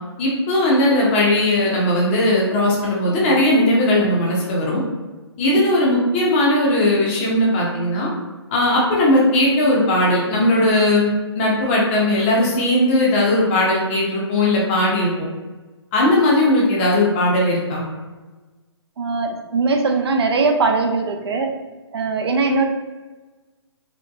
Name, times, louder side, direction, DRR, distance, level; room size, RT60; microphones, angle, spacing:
voice 1, 0.2-4.8 5.4-8.1 8.5-15.3 15.9-17.8, left 1 dB, 25° left, -4 dB, 0.5 m, -18 dB
voice 2, 19.0-21.5 21.9-22.6, right 3 dB, 60° right, 4 dB, 0.4 m, -20 dB
2.7 x 2.1 x 2.3 m, 1.2 s
figure-of-eight pair, 140°, 15 cm